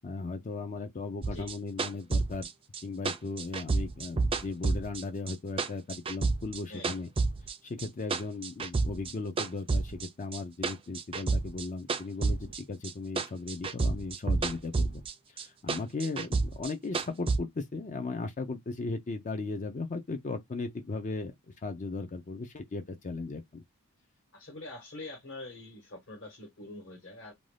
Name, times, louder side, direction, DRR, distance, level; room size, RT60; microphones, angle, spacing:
voice 1, 0.0-2.5 2.8-7.1 7.6-15.0 15.3-21.3 21.6-23.6, left 3 dB, 35° left, 0.4 m, -37 dB
sound 1, 1.2-5.3 5.6-7.5 7.8-9.1 9.4-12.9 13.2-15.1 15.4-17.4, right 3 dB, 25° right, 0.4 m, -30 dB
voice 2, 12.2-12.6 24.3-27.3, left 2 dB, 55° left, 1.2 m, -45 dB
2.6 x 2.3 x 3.2 m
head